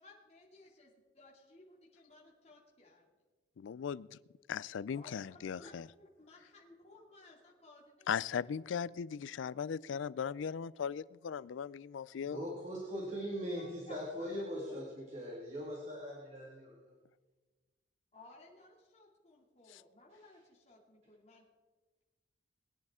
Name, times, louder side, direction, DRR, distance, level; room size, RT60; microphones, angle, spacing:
voice 1, 0.0-3.1 4.9-8.7 13.4-14.5 18.1-21.4, left 2 dB, 35° left, -4 dB, 2.6 m, -59 dB
voice 2, 3.6-4.2 4.5-5.8 8.1-12.4 19.7-19.8, left 7 dB, 75° left, 20 dB, 0.3 m, -38 dB
voice 3, 12.2-16.9, equal, 35° right, -3 dB, 2.1 m, -41 dB
21.5 x 10.5 x 3.7 m, 1.3 s
head